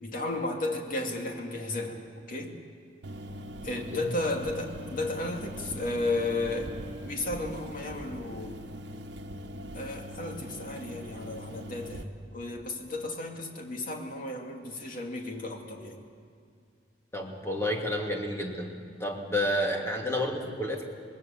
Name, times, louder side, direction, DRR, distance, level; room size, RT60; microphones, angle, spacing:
voice 1, 0.0-2.0 2.3-2.6 3.6-6.7 7.0-8.6 9.7-16.1, left 2 dB, 50° left, 2 dB, 2.6 m, -34 dB
sound 1, 3.0-12.0, equal, 65° right, 1.3 m, -41 dB
voice 2, 17.1-18.7 19.0-20.8, left 1 dB, 15° left, 0 dB, 2.7 m, -30 dB
25.0 x 20.0 x 7.3 m, 2.3 s
head